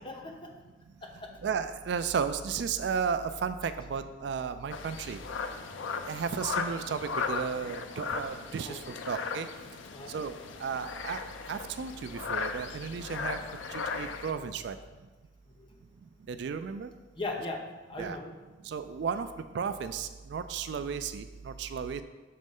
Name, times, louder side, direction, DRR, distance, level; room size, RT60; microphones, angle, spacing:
voice 1, 0.0-0.5 1.0-1.3 8.6-8.8 9.9-10.1 15.5-15.7 17.1-17.6 17.9-18.3, left 2 dB, 25° left, 2 dB, 0.7 m, -38 dB
voice 2, 1.4-5.2 6.0-9.5 10.1-10.3 10.6-11.2 11.5-13.4 13.7-14.8 16.3-16.9 18.0-18.2 18.6-19.3 19.5-22.0, right 6 dB, 65° right, 11 dB, 0.3 m, -34 dB
sound 1, 4.7-14.3, left 5 dB, 85° left, 0.5 m, -37 dB
6.6 x 3.1 x 5.3 m, 1.2 s
head